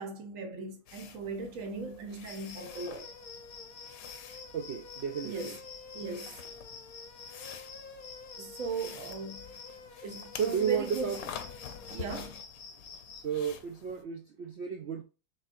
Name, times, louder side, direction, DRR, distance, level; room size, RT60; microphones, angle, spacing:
voice 1, 0.0-3.1 5.2-5.6 5.9-6.4 8.4-9.6 10.0-11.1 11.9-12.4, right 4 dB, 60° right, 1.1 m, -38 dB
sound 1, 0.9-14.0, left 8 dB, 70° left, 1.0 m, -48 dB
sound 2, 2.3-13.2, left 5 dB, 90° left, 1.4 m, -49 dB
sound 3, 2.6-12.3, left 3 dB, 45° left, 0.8 m, -51 dB
voice 2, 4.5-5.6 10.4-11.2 13.2-15.0, right 7 dB, 75° right, 0.6 m, -33 dB
5.2 x 3.5 x 2.5 m
omnidirectional pair, 1.6 m